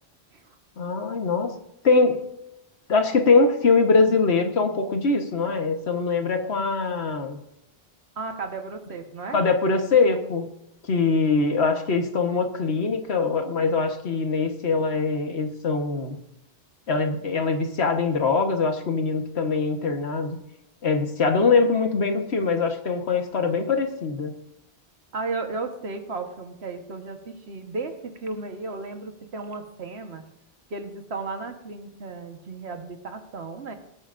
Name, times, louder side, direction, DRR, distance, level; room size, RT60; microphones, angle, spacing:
voice 1, 0.8-1.5 1.8-2.2 2.9-7.4 9.3-10.5 10.8-16.2 16.9-20.4 20.8-24.3, left 4 dB, 80° left, 6 dB, 1.5 m, -22 dB
voice 2, 8.2-9.4 25.1-30.2 30.7-33.7, right 3 dB, 80° right, 6 dB, 1.6 m, -34 dB
19.0 x 9.0 x 2.6 m, 0.85 s
omnidirectional pair, 1.1 m